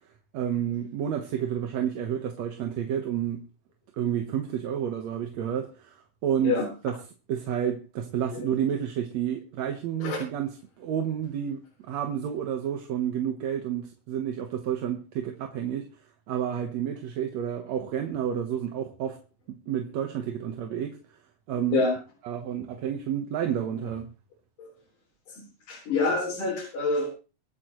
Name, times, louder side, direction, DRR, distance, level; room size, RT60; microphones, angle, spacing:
voice 1, 0.3-3.4 4.0-6.9 7.3-15.9 16.3-19.2 19.7-21.0 21.5-21.8 22.2-24.1, right 9 dB, 65° right, 2.2 m, -30 dB
voice 2, 25.7-27.2, left 3 dB, 75° left, 5.6 m, -26 dB
25.0 x 8.6 x 3.1 m
omnidirectional pair, 3.7 m